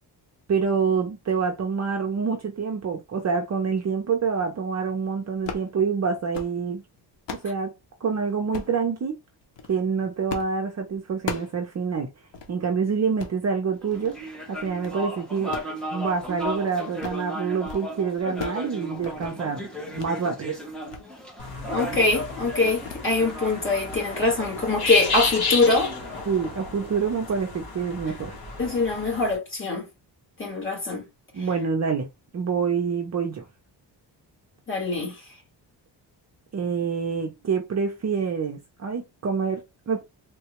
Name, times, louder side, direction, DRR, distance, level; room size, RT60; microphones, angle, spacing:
voice 1, 0.5-6.8 7.3-7.7 8.0-9.2 9.7-12.1 12.5-14.2 14.5-15.6 15.9-20.6 26.3-28.4 31.3-32.1 32.3-33.4 36.5-40.0, right 5 dB, 40° right, 0.6 m, -26 dB
sound 1, 5.4-5.7 6.1-6.6 7.0-7.5 8.5-8.8 9.4-9.7 10.3-10.6 10.9-11.6 11.9-12.0 12.3-12.5 13.0-13.4 13.9-14.2 14.5-15.0 15.4-16.6 16.9-17.3 17.5-17.9 18.1-18.7 18.9-19.3 20.0-20.1 20.5-21.0 21.4-21.5 21.9-22.1 22.9-23.1 23.4-23.6 23.9-24.1, left 6 dB, 75° left, 0.9 m, -37 dB
sound 2, 13.8-27.5, equal, ahead, 0.7 m, -36 dB
sound 3, 21.4-29.4, left 4 dB, 60° left, 1.3 m, -32 dB
voice 2, 21.7-25.9 28.6-29.9 30.4-31.0 31.4-31.5 34.7-35.1, left 3 dB, 30° left, 1.5 m, -23 dB
3.7 x 2.3 x 2.9 m
wide cardioid pair, 175°, 43 cm